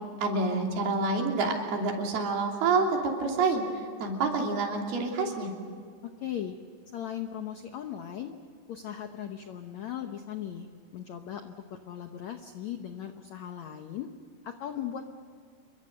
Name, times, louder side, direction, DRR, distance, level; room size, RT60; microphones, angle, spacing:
voice 1, 0.2-3.7 4.0-5.5, right 3 dB, 65° right, 1 dB, 4.8 m, -27 dB
voice 2, 6.0-6.6 6.9-8.4 8.7-14.1 14.4-15.0, left 10 dB, 80° left, 6 dB, 1.6 m, -38 dB
28.5 x 23.0 x 6.6 m, 2.1 s
omnidirectional pair, 4.8 m